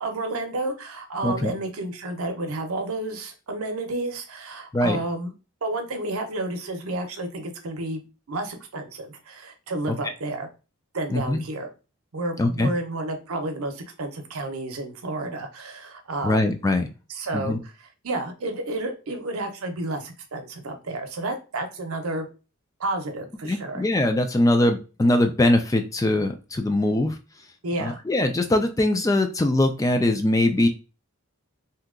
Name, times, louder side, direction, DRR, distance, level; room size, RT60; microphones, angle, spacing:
voice 1, 0.0-5.3 5.6-10.5 10.9-11.7 12.1-16.6 17.1-17.7 18.0-22.3 22.8-23.8 27.6-28.0, right 2 dB, 90° right, 5 dB, 0.7 m, -31 dB
voice 2, 12.4-12.7 16.2-16.9 17.3-17.6 23.4-27.2 27.8-30.7, left 1 dB, 15° left, 7 dB, 0.3 m, -22 dB
2.8 x 2.3 x 3.6 m, 0.32 s
head